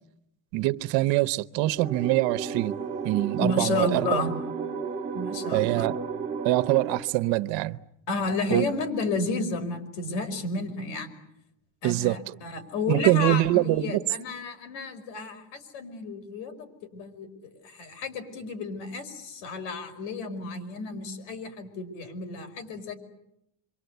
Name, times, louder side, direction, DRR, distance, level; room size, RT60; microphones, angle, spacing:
voice 1, 0.5-2.8 3.0-4.2 5.5-6.0 6.4-7.8 8.5-8.7 11.8-12.4 12.9-14.0, right 17 dB, 65° right, 1.0 m, -24 dB
sound 1, 1.8-7.0, right 6 dB, 15° right, 1.9 m, -33 dB
voice 2, 3.4-4.3 5.1-5.9 8.1-11.1 11.8-22.9, left 3 dB, 90° left, 5.4 m, -32 dB
27.5 x 24.0 x 8.1 m
cardioid pair, 140°, 48 cm